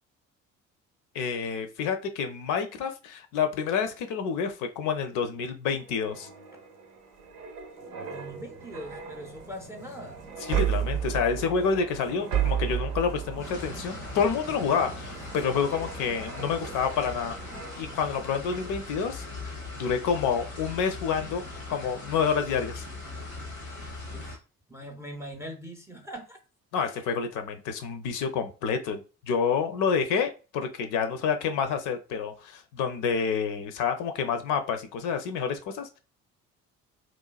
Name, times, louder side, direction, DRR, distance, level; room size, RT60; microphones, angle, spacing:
voice 1, 1.1-6.3 10.5-17.4 17.8-19.2 19.7-21.4 21.7-22.8 26.7-29.0 29.3-36.0, left 6 dB, 50° left, 0.5 m, -28 dB
sound 1, 5.8-18.1 18.5-18.7, right 9 dB, 70° right, 0.6 m, -34 dB
voice 2, 8.1-10.3 24.1-24.4 24.7-26.4 26.8-27.1, equal, 5° right, 0.4 m, -42 dB
sound 2, 13.4-24.4, left 2 dB, 90° left, 0.8 m, -40 dB
3.0 x 2.2 x 2.3 m
figure-of-eight pair, 45°, 41 cm